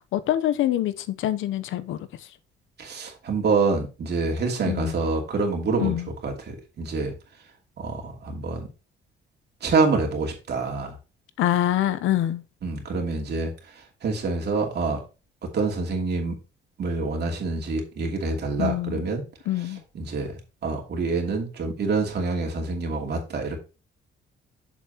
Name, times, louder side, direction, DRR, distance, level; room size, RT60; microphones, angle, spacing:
voice 1, 0.1-2.0 4.6-4.9 5.8-6.1 11.4-12.4 18.6-19.1 19.5-19.8, left 12 dB, 80° left, 0.7 m, -25 dB
voice 2, 2.8-6.0 6.2-7.1 7.8-8.7 9.6-10.9 12.6-13.5 14.0-15.0 15.4-16.4 16.8-19.2 19.9-20.3 20.6-23.6, right 3 dB, 55° right, 2.7 m, -26 dB
7.4 x 7.2 x 2.9 m
cardioid pair, 90°, 20 cm